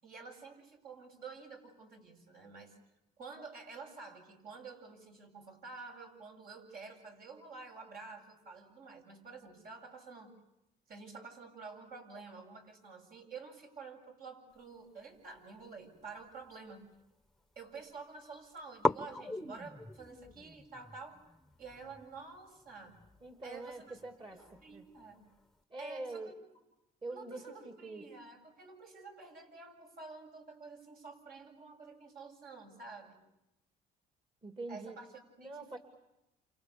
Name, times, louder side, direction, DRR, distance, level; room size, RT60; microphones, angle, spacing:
voice 1, 0.0-2.8 3.2-10.3 10.9-16.9 17.5-21.2 21.6-23.0 23.4-24.0 24.3-25.3 25.8-26.3 27.1-33.2 34.7-35.8, right 4 dB, 60° right, 2 dB, 8.0 m, -50 dB
sound 1, 15.3-17.1 17.3-18.0 18.3-18.4 18.8-25.6, left 2 dB, ahead, 1.1 m, -41 dB
voice 2, 23.2-24.9 25.7-26.3 27.0-28.0 34.4-35.0 35.4-35.8, right 2 dB, 30° right, 6 dB, 2.7 m, -44 dB
30.0 x 28.0 x 7.1 m, 0.90 s
cardioid pair, 110°, 17 cm